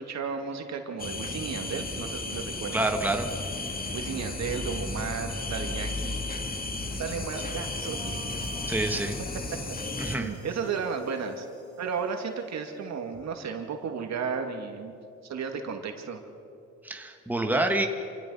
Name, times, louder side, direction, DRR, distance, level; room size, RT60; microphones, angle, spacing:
voice 1, 0.0-2.8 3.9-6.2 7.0-8.2 10.2-11.5 11.8-14.9 15.2-16.2, right 6 dB, 60° right, 5 dB, 2.4 m, -34 dB
sound 1, 1.0-10.2, left 2 dB, 30° left, 2.0 m, -34 dB
voice 2, 2.7-3.3 8.7-9.2 10.0-10.3 16.8-17.9, right 2 dB, 5° right, 4 dB, 1.6 m, -27 dB
sound 2, 6.8-13.0, left 2 dB, 65° left, 6.1 m, -50 dB
27.0 x 16.5 x 5.7 m, 2.5 s
cardioid pair, 90°, 30 cm